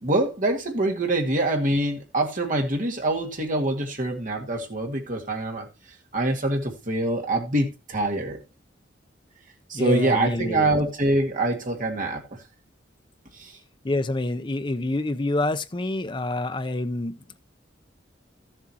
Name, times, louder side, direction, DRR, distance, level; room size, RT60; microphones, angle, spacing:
voice 1, 0.0-5.7 6.1-8.4 9.7-12.2 13.4-13.5, right 2 dB, 45° right, 2.0 m, -25 dB
voice 2, 9.7-10.8 13.8-17.1, left 2 dB, 25° left, 0.6 m, -27 dB
13.5 x 7.6 x 2.9 m
head